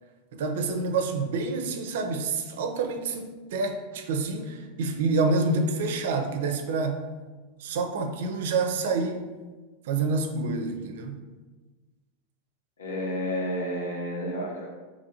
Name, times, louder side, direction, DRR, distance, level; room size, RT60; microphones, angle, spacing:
voice 1, 0.3-7.0 7.6-9.3 9.9-11.2, right 3 dB, 75° right, 6 dB, 0.5 m, -28 dB
voice 2, 12.8-14.7, equal, 85° left, -1 dB, 0.8 m, -30 dB
2.9 x 2.6 x 4.1 m, 1.3 s
hypercardioid pair, 105°, 0 cm